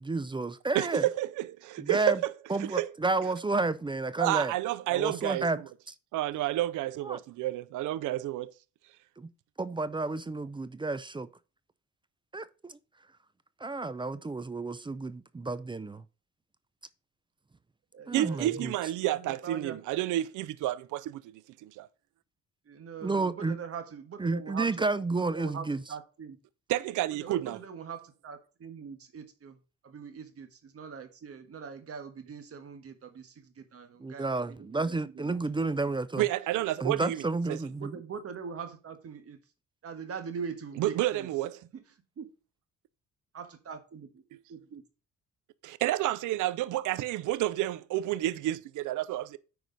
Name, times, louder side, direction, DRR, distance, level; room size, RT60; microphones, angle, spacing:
voice 1, 0.0-1.0 1.8-2.2 2.5-4.5 4.9-5.6 7.0-7.2 9.2-9.3 9.6-11.3 12.3-12.8 13.6-16.0 18.1-18.7 23.0-23.6 24.2-25.8 34.0-36.3 36.8-38.0, right 3 dB, 15° right, 0.5 m, -31 dB
voice 2, 0.7-2.3 2.6-2.9 4.2-5.5 6.1-8.5 18.1-21.9 26.7-27.6 36.2-37.6 40.8-41.6 44.3-44.4 45.6-49.4, right 14 dB, 80° right, 0.5 m, -30 dB
voice 3, 17.9-18.7 19.0-19.8 22.7-24.9 25.3-26.4 27.1-35.4 37.8-39.4 39.8-41.3 41.7-41.8 42.2-42.3 43.3-44.2 44.5-44.8, right 6 dB, 50° right, 1.4 m, -42 dB
9.2 x 4.8 x 3.9 m
cardioid pair, 90°, 30 cm